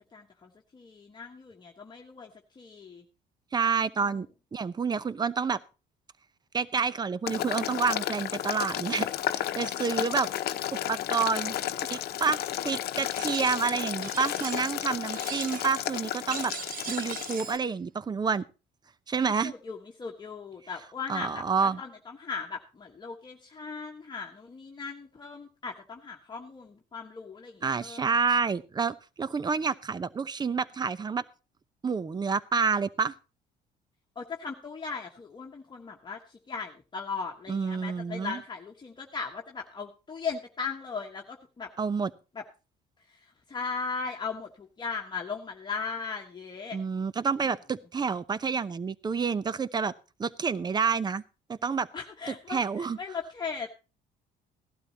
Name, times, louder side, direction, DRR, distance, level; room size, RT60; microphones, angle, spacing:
voice 1, 0.1-3.0 19.2-28.5 34.1-41.7 42.3-42.4 43.0-46.8 51.9-53.7, left 5 dB, 25° left, 1 dB, 1.4 m, -38 dB
voice 2, 3.5-4.3 4.5-5.6 6.5-10.3 10.7-16.5 16.9-18.4 19.1-19.5 21.1-21.8 27.6-31.2 31.8-33.1 37.5-38.4 41.8-42.1 46.7-49.9 50.2-51.2 51.5-51.9 52.5-53.0, right 5 dB, 25° right, 17 dB, 0.8 m, -29 dB
Boiling, 7.3-17.6, left 12 dB, 70° left, 0.9 m, -33 dB
sound 1, 13.0-13.7 14.0-14.8 15.1-15.8 16.3-17.6, right 6 dB, 55° right, 1.3 m, -40 dB
17.0 x 12.0 x 2.9 m, 0.31 s
cardioid pair, 110°, 17 cm